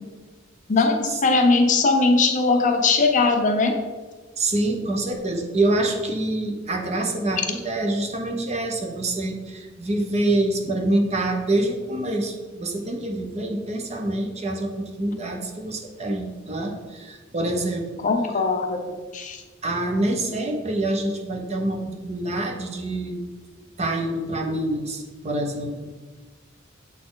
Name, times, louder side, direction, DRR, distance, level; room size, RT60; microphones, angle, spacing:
voice 1, 0.7-3.7 18.0-18.8 19.1-19.4, left 3 dB, 40° left, 5 dB, 0.6 m, -20 dB
voice 2, 4.4-18.0 19.6-23.2 23.8-25.9, right 1 dB, 35° right, 3 dB, 0.8 m, -26 dB
7.4 x 4.1 x 3.8 m, 1.3 s
head